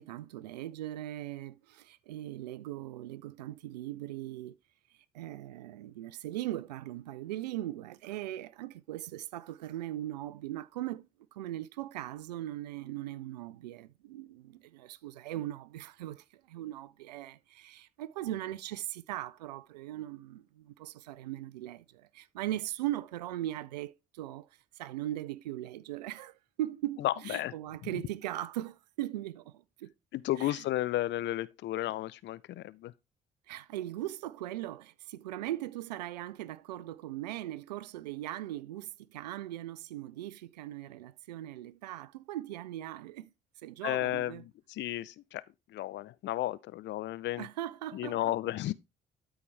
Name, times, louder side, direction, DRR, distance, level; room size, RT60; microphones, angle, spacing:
voice 1, 0.0-4.6 5.1-24.5 24.8-29.9 30.4-30.6 33.5-43.3 43.6-44.4 47.4-48.3, right 14 dB, 85° right, 0.4 m, -39 dB
voice 2, 27.0-27.5 27.8-27.9 30.1-32.9 43.8-45.4 45.7-47.5 47.9-48.7, left 15 dB, 60° left, 0.6 m, -33 dB
13.0 x 4.5 x 3.3 m
hypercardioid pair, 45°, 21 cm